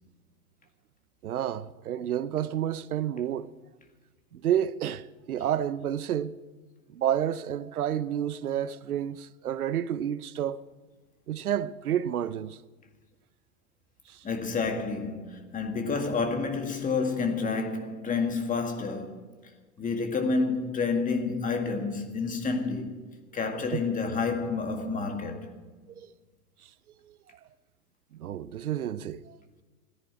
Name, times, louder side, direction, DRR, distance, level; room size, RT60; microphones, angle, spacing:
voice 1, 1.2-3.5 4.3-6.4 6.9-10.7 11.3-12.6 14.1-14.2 23.7-23.8 26.0-26.1 27.1-27.2 28.1-29.4, right 10 dB, 85° right, 0.7 m, -30 dB
voice 2, 14.2-19.3 19.8-23.0 23.3-25.5, left 4 dB, 20° left, 2.0 m, -29 dB
14.5 x 10.0 x 8.5 m
hypercardioid pair, 110°, 43 cm